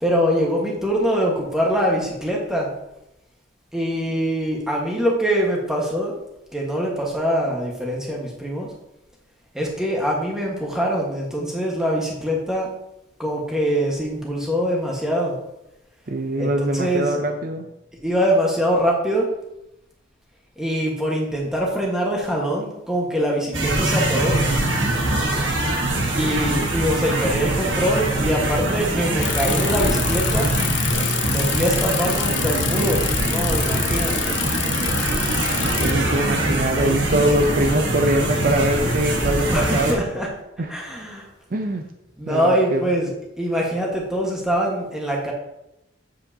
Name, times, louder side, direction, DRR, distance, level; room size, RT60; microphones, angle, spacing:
voice 1, 0.0-2.7 3.7-6.1 6.5-8.7 9.5-12.7 13.2-15.4 16.4-17.2 18.0-19.3 20.6-24.4 26.2-30.5 31.3-34.4 39.5-40.3 40.7-41.3 42.2-45.3, equal, 5° right, -2 dB, 1.4 m, -23 dB
voice 2, 16.1-17.7 35.8-40.0 40.6-40.7 41.5-41.9 42.2-42.9, right 1 dB, 45° right, 5 dB, 0.5 m, -23 dB
sound 1, 23.5-39.9, right 1 dB, 70° right, 1.5 m, -23 dB
sound 2, 24.0-32.6 33.2-33.3 34.4-34.5, left 5 dB, 85° left, 1.6 m, -41 dB
Bicycle, 29.2-35.9, left 14 dB, 60° left, 0.4 m, -27 dB
7.9 x 7.6 x 2.8 m, 0.87 s
head